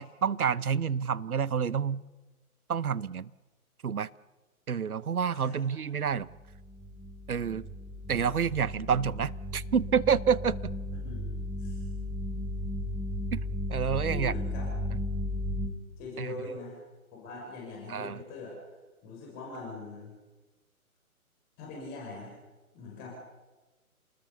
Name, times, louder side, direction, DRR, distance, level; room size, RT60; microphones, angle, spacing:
voice 1, 0.0-2.0 2.7-3.3 3.8-4.1 4.7-6.3 7.3-7.6 8.1-10.7 13.3-13.4 13.7-14.3 16.2-16.3 17.9-18.2, right 7 dB, 80° right, 20 dB, 0.9 m, -28 dB
sound 1, 6.3-15.7, left 1 dB, ahead, 1.8 m, -35 dB
voice 2, 10.9-11.8 14.0-14.7 16.0-16.8 17.1-18.6 19.0-20.1 21.6-22.4 22.7-23.2, left 3 dB, 20° left, -2 dB, 6.2 m, -42 dB
28.5 x 20.0 x 7.0 m, 1.2 s
figure-of-eight pair, 140°, 43 cm